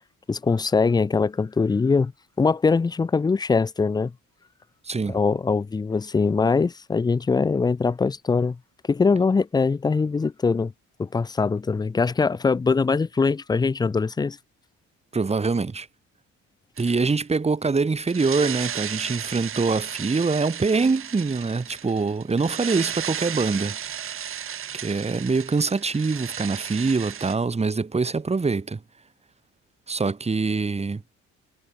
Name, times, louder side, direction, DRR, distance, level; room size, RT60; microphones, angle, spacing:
voice 1, 0.3-2.1 2.4-4.1 5.1-8.6 8.9-10.7 11.0-14.4, left 4 dB, 15° left, 0.3 m, -22 dB
voice 2, 4.8-5.2 15.1-15.9 16.8-23.8 24.8-28.8 29.9-31.0, right 4 dB, 20° right, 1.5 m, -24 dB
sound 1, 16.8-17.2 18.1-27.4, right 9 dB, 45° right, 1.0 m, -34 dB
cardioid pair, 90°, 30 cm